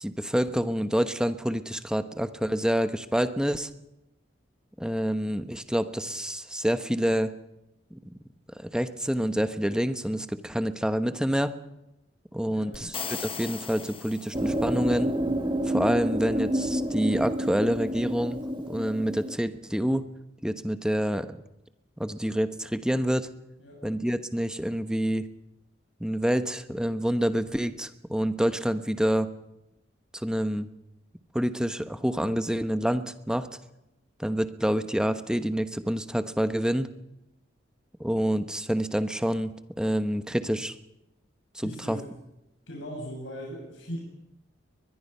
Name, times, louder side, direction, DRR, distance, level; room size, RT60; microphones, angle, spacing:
voice 1, 0.0-3.7 4.8-7.3 7.9-8.1 8.6-11.6 12.3-15.1 15.7-18.4 18.7-20.1 20.4-21.4 22.0-23.3 23.8-25.3 26.0-29.3 30.1-30.7 31.3-33.5 34.2-36.9 38.0-40.7 41.5-42.0, equal, 5° right, 10 dB, 1.0 m, -27 dB
voice 2, 12.4-12.9 23.6-23.8 41.6-42.0 42.7-44.0, equal, 90° left, -1 dB, 6.6 m, -39 dB
sound 1, 12.7-14.8, left 6 dB, 30° left, 1.0 m, -37 dB
sound 2, 14.3-19.4, right 1 dB, 25° right, 1.6 m, -29 dB
23.0 x 21.5 x 5.5 m, 0.91 s
head